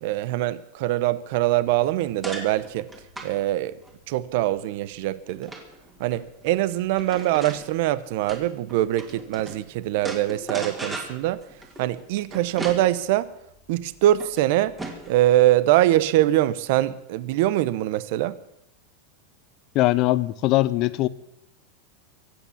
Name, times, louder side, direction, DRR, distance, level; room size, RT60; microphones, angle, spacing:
voice 1, 0.0-2.9 3.2-3.8 4.1-5.5 6.0-11.4 11.8-13.3 13.7-14.8 15.1-18.4, right 14 dB, 55° right, 0.8 m, -23 dB
sound 1, 1.8-9.6 10.0-15.2, right 2 dB, 10° right, 2.6 m, -39 dB
voice 2, 19.7-21.1, left 17 dB, 40° left, 0.7 m, -21 dB
23.0 x 8.6 x 7.2 m
supercardioid pair, 160°, 0 cm